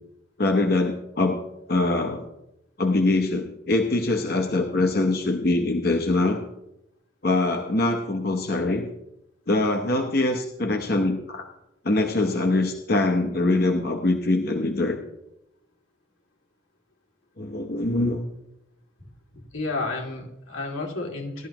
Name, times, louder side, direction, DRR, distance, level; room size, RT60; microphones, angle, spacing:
voice 1, 0.4-1.4 1.7-2.3 2.8-6.4 7.2-8.9 9.5-11.5 11.8-15.0 17.4-18.2, left 2 dB, 50° left, 4 dB, 0.9 m, -23 dB
voice 2, 19.5-21.5, left 3 dB, 85° left, -1 dB, 2.6 m, -31 dB
16.0 x 12.0 x 3.0 m, 0.85 s
head